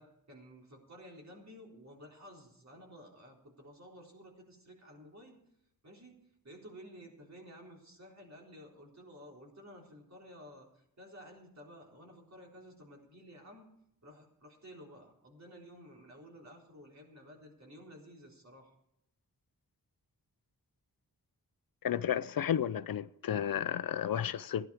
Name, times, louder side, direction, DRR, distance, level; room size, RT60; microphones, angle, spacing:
voice 1, 0.0-5.4 5.8-13.7 14.0-18.7, equal, 50° right, 4.0 m, -53 dB
voice 2, 21.8-24.7, left 9 dB, 70° left, 0.5 m, -32 dB
16.0 x 11.0 x 4.9 m
wide cardioid pair, 115°, 36 cm